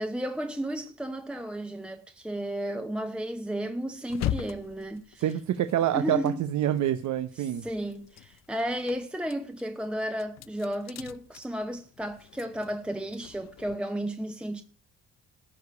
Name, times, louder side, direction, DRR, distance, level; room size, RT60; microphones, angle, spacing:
voice 1, 0.0-5.3 5.9-6.4 7.3-14.6, right 1 dB, 5° right, 0.8 m, -33 dB
sound 1, 4.1-7.1 7.4-13.8, left 12 dB, 60° left, 0.6 m, -40 dB
voice 2, 5.2-7.6, right 11 dB, 70° right, 0.8 m, -27 dB
13.5 x 5.0 x 8.2 m
cardioid pair, 90°, 30 cm